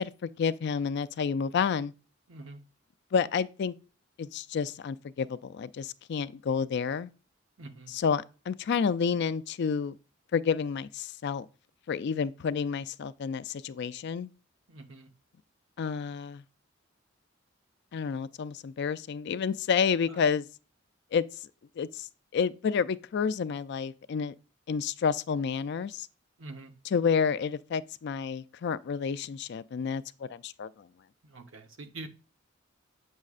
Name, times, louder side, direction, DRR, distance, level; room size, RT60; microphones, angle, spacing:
voice 1, 0.0-1.9 3.1-3.7 4.2-7.1 7.9-10.0 10.3-11.5 11.9-14.3 15.8-16.4 17.9-20.5 21.1-21.2 21.8-22.1 22.3-24.3 24.7-26.1 26.9-30.9, left 6 dB, 60° left, 0.4 m, -30 dB
voice 2, 2.3-2.6 7.6-7.9 14.7-15.1 20.1-20.2 26.4-26.7 31.2-32.1, right 2 dB, 70° right, 0.9 m, -45 dB
8.3 x 6.3 x 2.4 m
head